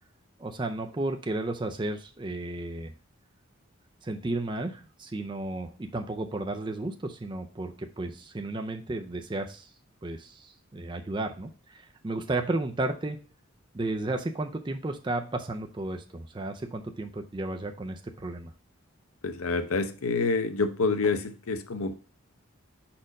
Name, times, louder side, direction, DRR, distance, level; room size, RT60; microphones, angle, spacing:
voice 1, 0.4-2.9 4.0-9.7 10.0-13.2 13.7-18.5, right 2 dB, 20° right, 5 dB, 0.4 m, -33 dB
voice 2, 19.2-21.9, left 4 dB, 85° left, 9 dB, 0.7 m, -27 dB
4.9 x 4.4 x 5.2 m, 0.37 s
head